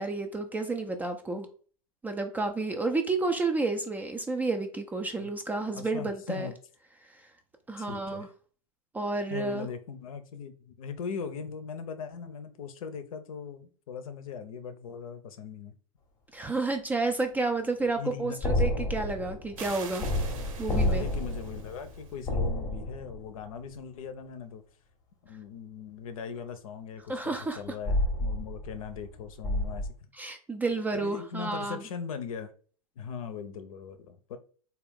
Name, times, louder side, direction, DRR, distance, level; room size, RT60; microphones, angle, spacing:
voice 1, 0.0-1.5 2.0-6.5 7.7-8.3 8.9-9.7 16.3-20.1 20.6-21.0 27.1-27.6 30.1-31.8, right 3 dB, 10° right, 0.3 m, -30 dB
voice 2, 5.8-6.6 7.8-8.3 9.3-15.7 17.8-18.4 20.7-24.6 25.2-29.9 30.9-32.5 33.0-34.4, left 6 dB, 65° left, 0.6 m, -40 dB
sound 1, 18.4-23.5 27.9-29.1 29.4-29.9, left 1 dB, 20° left, 0.7 m, -30 dB
sound 2, 19.6-22.1, right 6 dB, 65° right, 0.7 m, -45 dB
3.6 x 2.3 x 3.5 m
hypercardioid pair, 105°, 19 cm